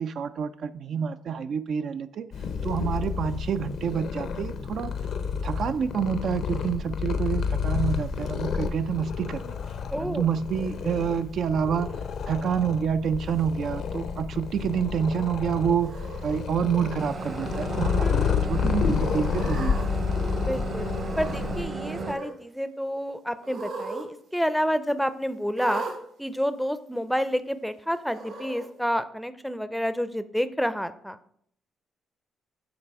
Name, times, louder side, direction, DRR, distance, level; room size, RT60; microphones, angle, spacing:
voice 1, 0.0-2.3 2.6-4.9 5.4-9.5 10.0-11.9 12.3-15.9 16.2-19.7, right 7 dB, 65° right, 11 dB, 0.3 m, -28 dB
Purr, 2.3-21.6, left 6 dB, 65° left, 0.6 m, -30 dB
voice 2, 9.9-10.3 18.0-18.6 20.4-20.9 21.2-25.8 26.2-31.2, equal, ahead, 12 dB, 0.5 m, -29 dB
Cat, 15.8-16.4 17.1-17.6 17.9-18.0 19.1-19.9 20.8-21.5 21.8-22.3 23.4-24.1 24.3-24.4 25.5-26.0 26.9-27.0 28.1-28.7, right 3 dB, 85° right, 2.3 m, -38 dB
sound 1, 17.0-22.1, right 4 dB, 45° right, 1.0 m, -34 dB
8.8 x 3.4 x 4.6 m, 0.66 s
cardioid pair, 90°, 0 cm